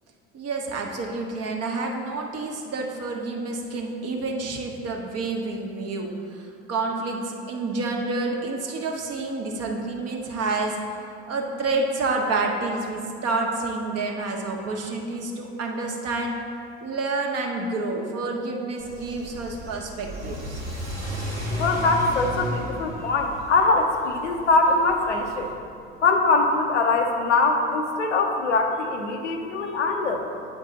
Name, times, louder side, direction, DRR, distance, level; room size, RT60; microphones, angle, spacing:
voice 1, 0.3-10.8 11.3-16.4 16.8-20.6, right 3 dB, 45° right, 1 dB, 1.1 m, -29 dB
Car / Accelerating revving vroom, 18.8-25.5, left 1 dB, 90° right, 1.6 m, -34 dB
voice 2, 21.6-25.5 26.0-30.3, left 3 dB, 85° left, 3 dB, 0.7 m, -22 dB
8.1 x 4.5 x 4.0 m, 2.4 s
figure-of-eight pair, 60°, 34 cm